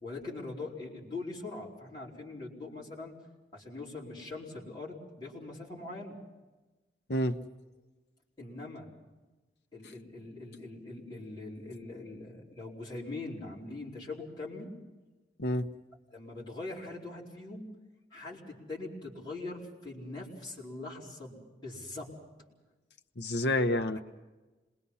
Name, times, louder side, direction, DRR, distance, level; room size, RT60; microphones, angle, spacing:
voice 1, 0.0-3.1 3.5-6.2 8.4-8.9 9.7-14.7 16.1-17.7 18.1-22.1, left 2 dB, 25° left, -6 dB, 4.6 m, -42 dB
voice 2, 23.2-24.0, left 1 dB, 80° left, 6 dB, 1.0 m, -28 dB
27.0 x 21.5 x 5.7 m, 1.2 s
head